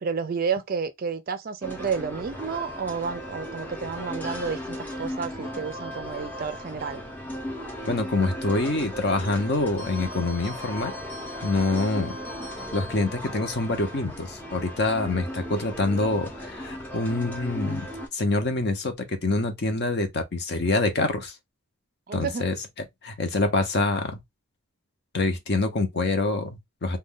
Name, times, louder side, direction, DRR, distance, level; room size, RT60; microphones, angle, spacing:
voice 1, 0.0-7.1 22.1-22.4, right 5 dB, 40° right, 0.4 m, -31 dB
sound 1, 1.6-18.1, equal, 10° left, 0.6 m, -36 dB
voice 2, 7.8-10.9 11.4-12.2 12.7-17.9 18.1-21.3 22.1-22.6 23.0-24.2 25.1-27.0, left 2 dB, 50° left, 0.6 m, -26 dB
2.5 x 2.2 x 3.5 m
head